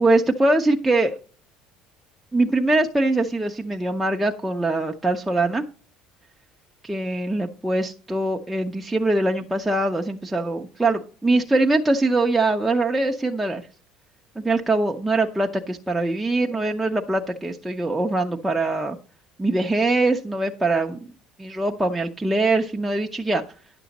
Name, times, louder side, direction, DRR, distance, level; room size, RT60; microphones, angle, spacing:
voice 1, 0.0-1.1 2.3-5.6 6.8-13.6 14.4-19.0 19.4-21.0 21.4-23.4, right 2 dB, 5° right, 1 dB, 0.6 m, -22 dB
10.5 x 6.7 x 4.0 m, 0.38 s
cardioid pair, 165°, 0 cm